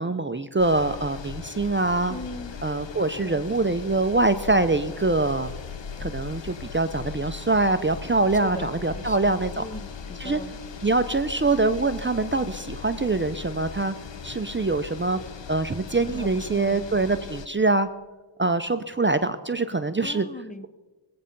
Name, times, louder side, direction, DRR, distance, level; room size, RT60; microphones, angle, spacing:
voice 1, 0.0-2.2 2.6-5.5 6.0-9.6 10.2-10.4 10.8-13.9 14.2-15.2 15.5-17.9 18.4-20.3, right 3 dB, 25° right, 10 dB, 0.7 m, -24 dB
sound 1, 0.6-17.5, left 6 dB, 60° left, 1.0 m, -39 dB
voice 2, 2.1-2.6 3.2-3.7 8.4-10.6 16.1-16.8 20.0-20.7, left 1 dB, 15° left, 9 dB, 0.8 m, -39 dB
20.5 x 8.8 x 5.3 m, 1.2 s
cardioid pair, 50°, 50 cm